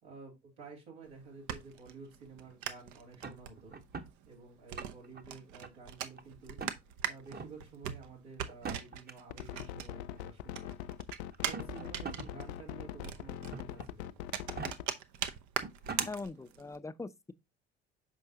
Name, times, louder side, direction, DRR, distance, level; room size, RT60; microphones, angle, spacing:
voice 1, 0.0-3.8 4.2-6.6 7.0-10.7 11.4-14.1, right 4 dB, 85° right, 3.0 m, -51 dB
sound 1, 1.0-10.2 10.5-16.8, right 9 dB, 65° right, 0.8 m, -41 dB
sound 2, 3.2-4.1 4.6-5.2 5.6-6.2 6.6-6.8 7.3-7.5 8.5-9.1 10.2-10.3 11.3-12.3 12.7-12.8 13.5-13.9 14.4-14.7 15.3-15.4 15.6-16.1, right 5 dB, 30° right, 1.0 m, -42 dB
sound 3, 9.3-14.9, left 11 dB, 70° left, 0.5 m, -42 dB
voice 2, 16.0-17.3, left 3 dB, 10° left, 0.5 m, -42 dB
6.7 x 5.3 x 2.8 m
hypercardioid pair, 50°, 33 cm